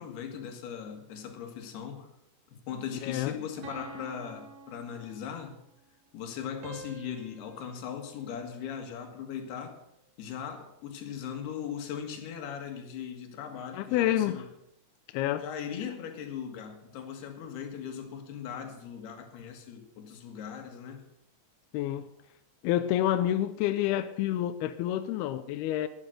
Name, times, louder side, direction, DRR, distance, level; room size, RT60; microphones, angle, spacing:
voice 1, 0.0-2.1 2.7-5.6 6.1-9.8 10.2-14.5 15.3-21.0, left 8 dB, 65° left, 3.5 m, -39 dB
voice 2, 3.0-3.3 13.7-14.4 15.1-15.5 21.7-22.1 22.6-25.9, left 12 dB, 80° left, 2.3 m, -28 dB
sound 1, 3.6-5.6 6.6-9.0, right 4 dB, 65° right, 1.7 m, -49 dB
12.0 x 11.0 x 6.6 m
omnidirectional pair, 5.1 m